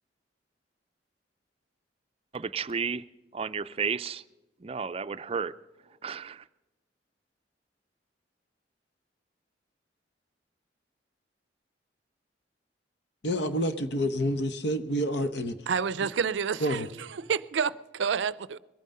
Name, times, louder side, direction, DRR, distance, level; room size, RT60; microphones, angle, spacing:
voice 1, 2.3-3.0 3.3-4.2 4.6-5.5 6.0-6.4, right 6 dB, 35° right, 0.4 m, -32 dB
voice 2, 13.2-15.6 16.6-16.9, equal, 70° left, 1.0 m, -28 dB
voice 3, 15.7-18.6, right 6 dB, 90° right, 0.5 m, -29 dB
21.5 x 9.2 x 5.4 m
head